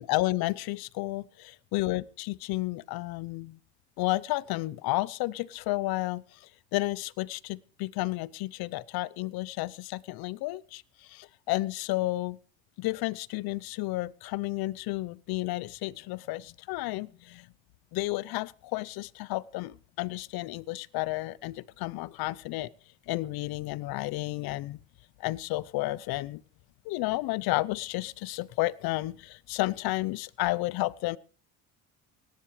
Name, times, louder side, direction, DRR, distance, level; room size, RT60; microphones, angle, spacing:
voice 1, 0.0-3.6 4.0-12.4 12.8-17.5 17.9-22.7 23.1-24.8 25.2-26.4 26.8-31.2, left 19 dB, 70° left, 21 dB, 0.8 m, -32 dB
17.5 x 10.5 x 4.9 m, 0.41 s
cardioid pair, 100°, 38 cm